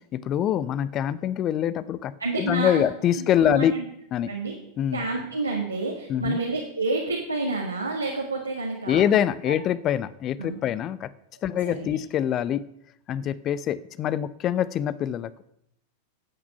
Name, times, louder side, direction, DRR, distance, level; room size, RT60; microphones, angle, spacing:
voice 1, 0.1-3.8 4.1-4.3 4.8-5.0 6.1-6.4 8.9-11.1 11.4-12.7 13.1-15.3, left 10 dB, 30° left, 19 dB, 0.6 m, -25 dB
voice 2, 2.2-2.8 3.4-3.8 4.3-4.5 4.9-9.0 9.5-9.6 10.4-10.6 11.6-11.9, right 2 dB, 80° right, -1 dB, 1.8 m, -29 dB
12.0 x 8.6 x 5.5 m, 0.75 s
figure-of-eight pair, 90°, 0 cm